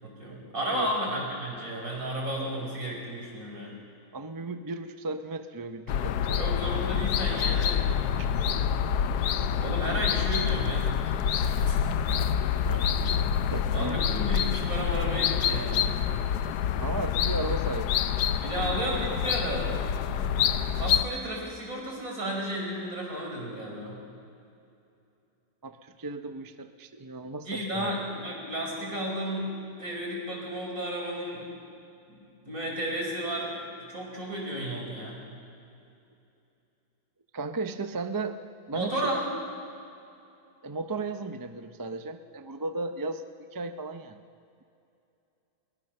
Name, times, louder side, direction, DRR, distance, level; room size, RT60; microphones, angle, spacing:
voice 1, 0.0-3.8 6.3-8.2 9.2-12.1 13.7-16.0 18.4-19.8 20.7-24.0 27.5-31.5 32.1-32.2 32.5-33.6 33.9-35.2 38.7-39.2, right 1 dB, 55° right, -1 dB, 5.9 m, -33 dB
voice 2, 4.1-6.4 8.2-8.3 12.4-14.1 16.8-17.9 18.6-18.7 25.6-28.0 37.3-38.4 38.7-39.1 40.6-44.2, right 3 dB, 35° right, 8 dB, 0.3 m, -35 dB
sound 1, 5.9-21.0, left 8 dB, 75° left, 1.2 m, -27 dB
22.0 x 20.0 x 6.7 m, 2.6 s
omnidirectional pair, 1.8 m